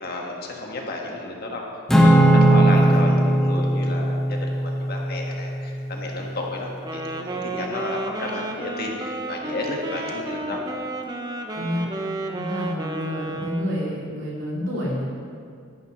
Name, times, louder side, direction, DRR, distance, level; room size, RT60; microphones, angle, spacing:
voice 1, 0.0-1.6 1.9-10.6, left 2 dB, 50° left, 0 dB, 1.5 m, -32 dB
Acoustic guitar / Strum, 1.9-6.3, right 1 dB, ahead, 1.2 m, -19 dB
Wind instrument woodwind instrument, 6.8-13.9, right 2 dB, 20° right, 0.7 m, -32 dB
voice 2, 11.5-11.9 12.2-15.0, equal, 65° right, -6 dB, 2.7 m, -29 dB
14.0 x 11.0 x 3.1 m, 2.3 s
head